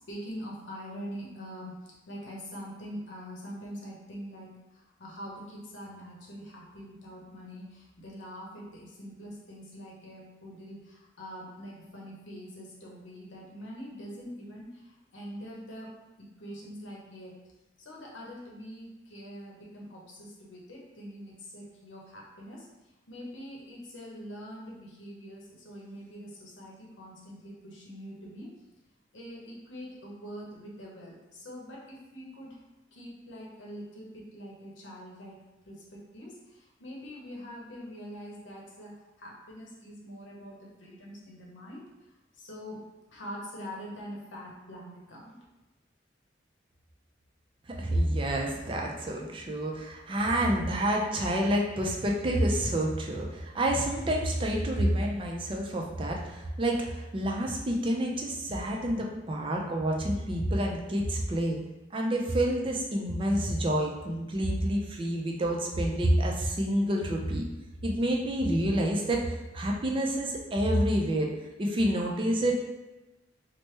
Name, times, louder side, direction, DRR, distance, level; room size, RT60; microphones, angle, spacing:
voice 1, 0.1-17.4 17.8-28.5 29.1-32.6 32.9-35.4 35.6-42.8 43.1-45.4, equal, 85° left, -3 dB, 0.8 m, -44 dB
voice 2, 47.7-61.6 61.9-67.4 67.8-71.3 71.6-72.5, right 1 dB, 30° right, -1 dB, 0.4 m, -28 dB
3.1 x 2.1 x 3.1 m, 1.1 s
head